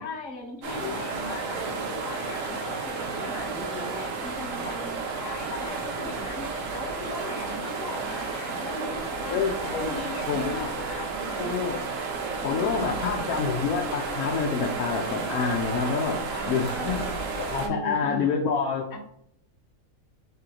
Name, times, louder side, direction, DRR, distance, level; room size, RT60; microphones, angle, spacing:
voice 1, 0.0-11.5 12.5-13.2 16.3-17.2 17.6-18.3 18.9-19.0, left 2 dB, 65° left, 1 dB, 1.2 m, -39 dB
sound 1, 0.6-17.7, right 4 dB, 70° right, 1.1 m, -32 dB
voice 2, 9.3-9.9 10.3-10.7 11.4-11.8 12.4-16.2 16.5-17.0 17.4-18.9, left 5 dB, 85° left, -1 dB, 1.1 m, -27 dB
3.2 x 2.9 x 3.8 m, 0.71 s
omnidirectional pair, 1.5 m